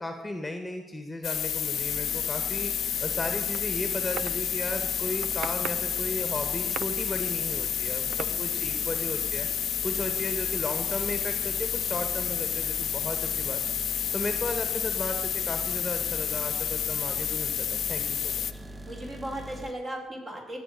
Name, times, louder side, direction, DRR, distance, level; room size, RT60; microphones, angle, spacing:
voice 1, 0.0-9.5 9.8-13.6 14.1-18.4, left 2 dB, 10° left, 6 dB, 1.6 m, -35 dB
sound 1, 1.2-18.5, left 9 dB, 65° left, 0.7 m, -30 dB
sound 2, 1.3-19.7, right 1 dB, 15° right, 0.9 m, -43 dB
sound 3, 3.5-4.3 4.9-6.0 6.3-7.3 8.1-8.3, right 11 dB, 80° right, 0.4 m, -40 dB
voice 2, 8.0-8.5 18.8-20.6, right 1 dB, 35° right, 0 dB, 5.0 m, -37 dB
18.0 x 7.6 x 6.7 m, 1.2 s
cardioid pair, 90°, 0 cm